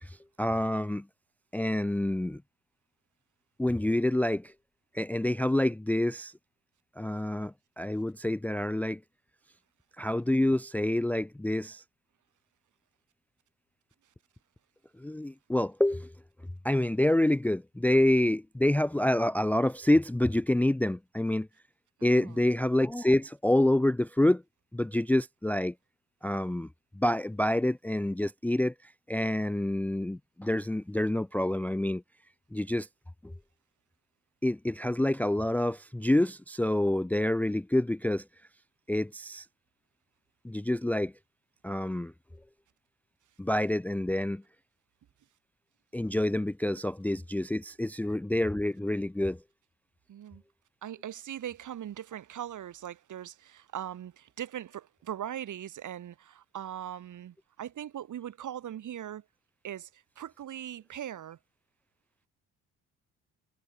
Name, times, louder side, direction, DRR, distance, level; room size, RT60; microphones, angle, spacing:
voice 1, 0.0-1.0 1.5-2.4 3.6-4.5 4.9-6.3 7.0-9.0 10.0-11.8 15.0-16.1 16.6-21.5 22.0-24.4 24.7-25.7 26.2-26.7 27.0-32.0 32.5-32.9 33.2-33.3 34.4-38.2 38.9-39.5 40.4-41.1 41.6-42.1 43.4-44.4 45.9-49.4, left 1 dB, 5° left, 0.6 m, -27 dB
voice 2, 22.0-22.4 50.1-50.4 50.8-59.2 59.6-61.4, right 10 dB, 60° right, 4.1 m, -40 dB
hypercardioid pair, 60°, 35 cm